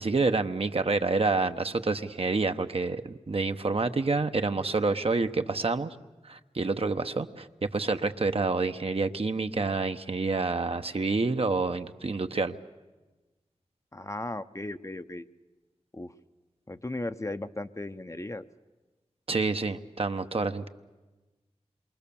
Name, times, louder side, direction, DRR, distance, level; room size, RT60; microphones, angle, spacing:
voice 1, 0.0-6.0 6.2-12.6 19.3-20.7, right 3 dB, 55° right, 7 dB, 0.9 m, -28 dB
voice 2, 13.9-15.2 15.9-16.1 16.7-18.4, left 2 dB, 25° left, 10 dB, 0.7 m, -36 dB
27.5 x 23.0 x 7.0 m, 1.2 s
wide cardioid pair, 50°, 12 cm